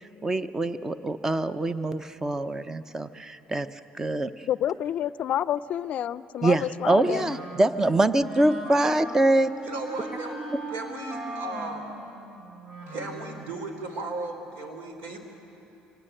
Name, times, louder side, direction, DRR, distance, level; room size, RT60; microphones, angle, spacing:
voice 1, 0.2-3.7 4.0-4.3 6.4-9.5, right 2 dB, 15° right, 12 dB, 0.7 m, -24 dB
voice 2, 4.5-7.3, left 11 dB, 50° left, 17 dB, 0.5 m, -29 dB
Wind instrument woodwind instrument, 7.0-13.5, right 1 dB, 50° right, 4.6 m, -39 dB
voice 3, 9.6-10.4 10.7-11.9 12.9-15.2, right 2 dB, 75° right, 5 dB, 3.5 m, -36 dB
25.0 x 18.5 x 8.9 m, 3.0 s
cardioid pair, 120°, 3 cm